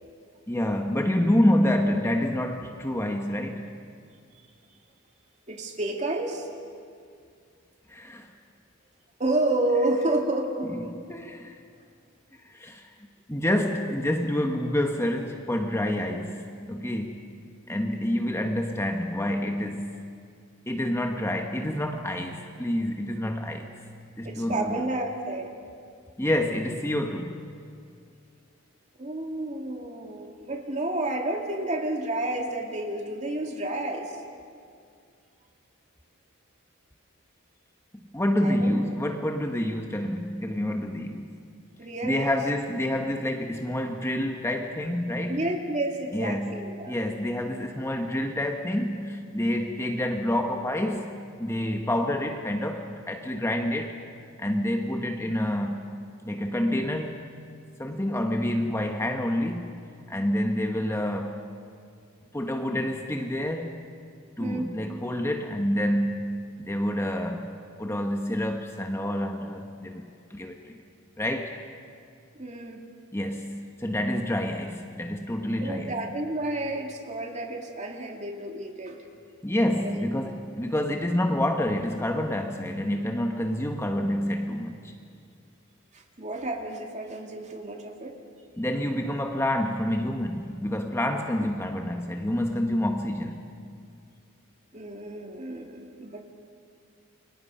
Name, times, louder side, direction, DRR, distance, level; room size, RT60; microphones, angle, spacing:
voice 1, 0.5-3.7 7.9-8.3 10.6-11.6 12.4-12.9 13.3-17.3 17.7-20.1 20.7-23.7 24.2-24.8 26.2-27.4 38.1-41.3 42.0-45.4 46.1-54.0 54.4-55.9 56.2-57.2 57.8-59.8 60.1-61.4 62.3-63.8 64.4-67.5 67.8-70.0 70.3-70.7 71.2-71.5 73.1-76.0 79.4-84.9 88.6-93.5, left 1 dB, 10° left, 4 dB, 1.2 m, -28 dB
voice 2, 5.5-6.5 9.2-10.9 15.9-16.2 24.2-25.5 29.0-34.1 38.4-38.8 41.8-42.4 45.3-47.0 64.4-64.7 72.3-72.8 75.6-79.0 79.8-80.1 85.9-88.2 94.7-96.2, right 2 dB, 35° right, 2 dB, 2.4 m, -30 dB
29.5 x 24.0 x 5.5 m, 2.3 s
head